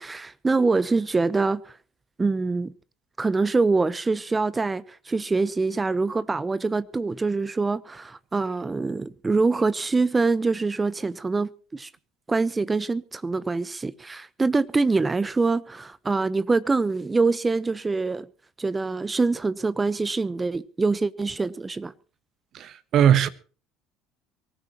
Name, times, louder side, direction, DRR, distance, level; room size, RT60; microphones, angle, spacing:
voice 1, 0.0-1.7 2.2-2.7 3.2-11.9 12.3-18.3 18.6-21.9, right 3 dB, 20° right, 0.9 m, -24 dB
voice 2, 22.5-23.3, right 9 dB, 50° right, 1.4 m, -19 dB
24.0 x 15.0 x 3.0 m
hypercardioid pair, 70°, 0 cm